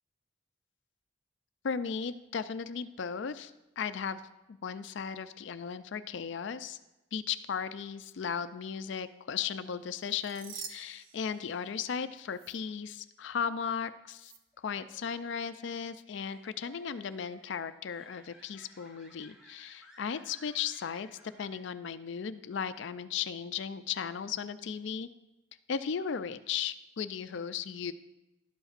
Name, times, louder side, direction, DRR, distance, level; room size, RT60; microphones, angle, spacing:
voice 1, 1.6-3.5 3.8-4.2 4.5-6.8 7.1-21.1 21.4-25.1 25.7-27.9, left 7 dB, 65° left, 12 dB, 0.4 m, -36 dB
sound 1, 9.9-12.0 12.3-12.5 14.2-14.4, right 7 dB, 85° right, 0.7 m, -47 dB
sound 2, 14.5-22.1, left 1 dB, 5° right, 1.0 m, -59 dB
12.0 x 7.9 x 2.5 m, 0.97 s
head